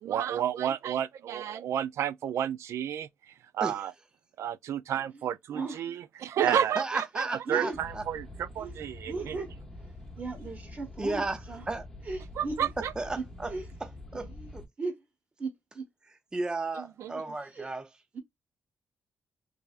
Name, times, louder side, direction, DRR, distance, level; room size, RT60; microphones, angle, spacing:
voice 1, 0.0-3.1 3.5-3.9 4.4-9.4 12.4-12.9 16.8-17.1, right 10 dB, 75° right, 0.4 m, -31 dB
voice 2, 6.5-8.1 11.0-11.4 11.7-11.9 13.0-13.5 13.8-14.6 16.3-17.9, right 2 dB, 15° right, 0.5 m, -34 dB
voice 3, 7.5-7.8 8.6-8.8 9.1-9.5 10.2-11.6 12.1-12.7 13.2-13.3 13.5-13.6 14.1-14.5 14.8-14.9 15.4-15.8 17.5-17.7 18.1-18.2, right 3 dB, 35° right, 1.2 m, -36 dB
sound 1, 7.7-14.7, left 1 dB, 10° left, 0.9 m, -45 dB
3.4 x 3.3 x 2.4 m
cardioid pair, 120°, 5 cm